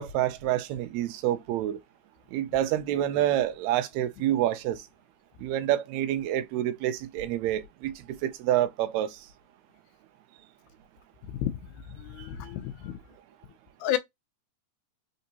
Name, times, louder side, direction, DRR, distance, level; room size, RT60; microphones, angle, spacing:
voice 1, 0.0-1.8 2.3-4.8 5.4-9.2, right 12 dB, 80° right, 1.7 m, -28 dB
voice 2, 12.2-12.9 13.8-14.0, left 13 dB, 80° left, 1.9 m, -30 dB
4.4 x 3.7 x 2.8 m
omnidirectional pair, 3.5 m